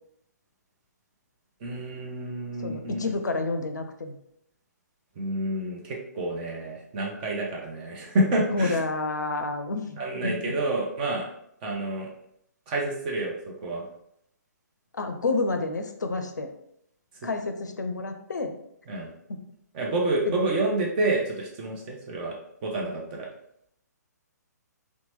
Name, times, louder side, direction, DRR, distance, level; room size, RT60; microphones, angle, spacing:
voice 1, 1.6-3.1 5.1-8.8 10.0-11.2 11.6-12.1 12.7-13.9 17.2-17.3 18.9-19.1 19.7-22.4 22.6-23.3, right 2 dB, 30° right, -1 dB, 0.7 m, -28 dB
voice 2, 2.6-4.2 8.5-10.5 14.9-16.5 17.2-18.5 19.3-19.4, left 3 dB, 75° left, 6 dB, 0.4 m, -29 dB
3.0 x 2.1 x 3.0 m, 0.74 s
figure-of-eight pair, 130°, 10 cm